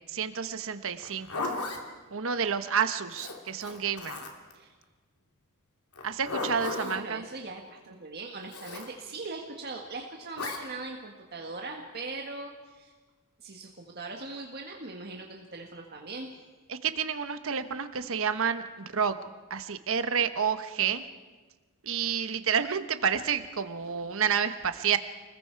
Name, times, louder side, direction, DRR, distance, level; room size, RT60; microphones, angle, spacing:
voice 1, 0.1-1.4 2.1-4.2 6.0-7.2 16.7-19.2 19.5-21.1 21.8-25.0, right 7 dB, 60° right, 10 dB, 1.1 m, -29 dB
Zipper (clothing), 1.0-1.8 3.1-4.5 5.9-7.0 8.5-8.9 10.3-10.6, left 2 dB, 85° left, 2.8 m, -35 dB
voice 2, 6.8-12.9 13.4-16.3, right 3 dB, 45° right, 1 dB, 1.7 m, -40 dB
29.5 x 21.0 x 4.7 m, 1.3 s
head